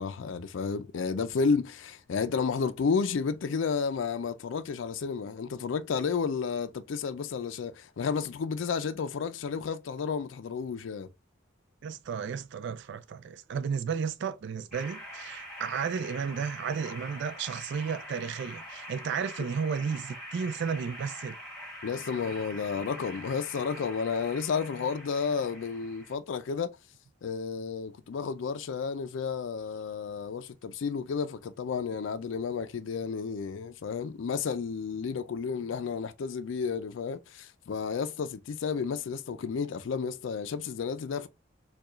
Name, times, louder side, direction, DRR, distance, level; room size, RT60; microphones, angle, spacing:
voice 1, 0.0-11.1 21.8-26.8 27.2-41.3, left 5 dB, 75° left, 0.4 m, -32 dB
voice 2, 11.8-21.4, right 6 dB, 65° right, 0.3 m, -33 dB
sound 1, 14.7-26.1, equal, 5° left, 1.9 m, -44 dB
4.5 x 2.3 x 3.0 m
head